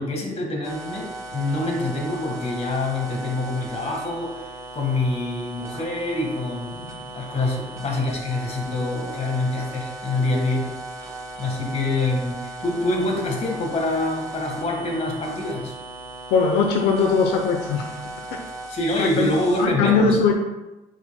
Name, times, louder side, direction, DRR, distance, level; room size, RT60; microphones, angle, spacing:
voice 1, 0.0-4.5 4.7-10.7 11.0-15.7 18.7-20.2, left 2 dB, 40° left, 1 dB, 1.6 m, -26 dB
sound 1, 0.6-19.7, right 2 dB, 20° right, 1.1 m, -37 dB
voice 2, 16.3-17.9 19.0-19.3 19.6-20.3, left 5 dB, 80° left, 3 dB, 0.7 m, -20 dB
9.1 x 4.6 x 2.3 m, 1.0 s
cardioid pair, 110°, 17 cm